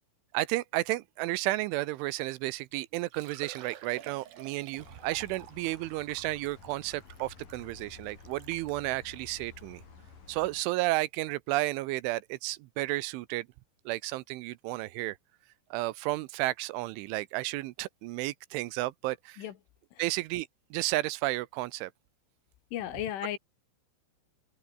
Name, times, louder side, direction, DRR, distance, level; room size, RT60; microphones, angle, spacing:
voice 1, 0.3-9.8 10.3-13.5 13.9-15.2 15.7-19.4 20.0-21.9, right 19 dB, 80° right, 3.1 m, -32 dB
Liquid, 2.9-8.8 9.5-9.6 10.1-10.2 11.8-11.9 12.1-12.2, right 10 dB, 60° right, 3.3 m, -51 dB
sound 1, 4.8-10.6, left 5 dB, 45° left, 6.7 m, -52 dB
voice 2, 22.7-23.4, left 12 dB, 75° left, 4.5 m, -35 dB
omnidirectional pair, 5.6 m